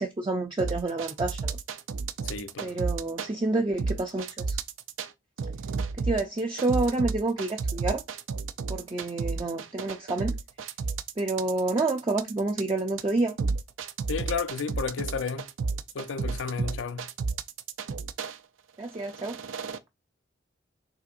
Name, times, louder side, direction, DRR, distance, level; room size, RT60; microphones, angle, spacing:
voice 1, 0.0-1.6 2.6-4.6 6.0-8.0 8.7-10.4 11.2-13.3 18.8-19.3, right 2 dB, 25° right, 0.5 m, -28 dB
sound 1, 0.6-3.3 3.8-5.1 5.4-18.4 18.9-19.8, right 4 dB, 85° right, 0.5 m, -32 dB
voice 2, 2.2-2.8 14.1-15.5 15.9-17.1, left 5 dB, 75° left, 0.5 m, -32 dB
5.5 x 3.5 x 2.5 m
head